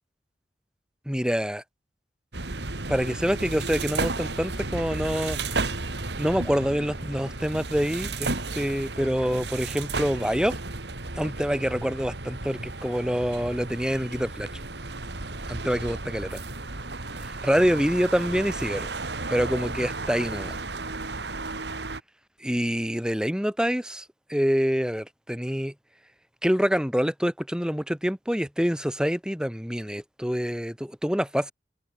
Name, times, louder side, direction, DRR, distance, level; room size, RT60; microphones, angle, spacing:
voice 1, 1.1-1.6 2.9-5.7 6.2-10.6 11.1-14.5 15.5-16.4 17.2-18.9 19.3-20.6 22.4-25.7 26.4-31.5, equal, 5° right, 5.9 m, -26 dB
sound 1, 2.3-22.0, right 3 dB, 70° right, 2.5 m, -33 dB
head